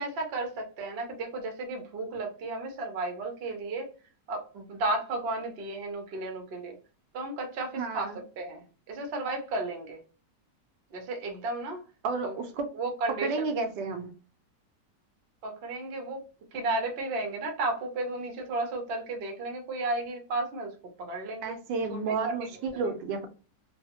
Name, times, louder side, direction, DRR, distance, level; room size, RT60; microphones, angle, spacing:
voice 1, 0.0-3.9 4.3-6.8 7.1-10.0 10.9-11.8 12.2-12.4 12.7-13.5 15.4-16.2 16.5-21.6 21.9-22.3 22.7-22.9, right 2 dB, 60° right, 0.6 m, -33 dB
voice 2, 7.8-8.2 12.0-12.7 13.2-14.1 21.4-23.3, right 4 dB, 85° right, 1.3 m, -31 dB
3.2 x 2.0 x 2.8 m
omnidirectional pair, 1.9 m